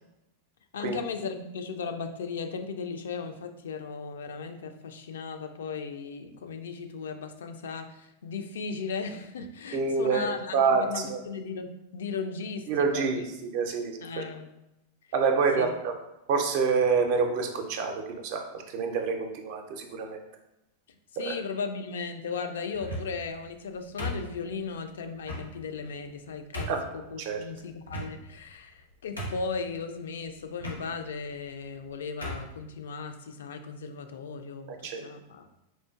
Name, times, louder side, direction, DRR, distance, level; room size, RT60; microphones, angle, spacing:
voice 1, 0.7-13.2 14.0-14.5 15.6-15.7 20.9-35.5, left 5 dB, 65° left, 7 dB, 0.3 m, -36 dB
voice 2, 9.7-11.2 12.7-14.2 15.1-15.9 16.3-20.2 21.2-21.4 26.7-26.8 27.2-27.4 34.7-35.0, right 5 dB, 50° right, 5 dB, 0.5 m, -27 dB
sound 1, 22.7-23.3 24.0-24.7 25.2-25.5 26.1-26.2 26.5-26.9 27.9-28.4 28.8-28.9 29.2-29.6 30.6-30.8 31.7-31.8 32.2-32.5, equal, 85° left, 0.9 m, -36 dB
4.3 x 2.4 x 2.3 m, 0.89 s
figure-of-eight pair, 90°, 0 cm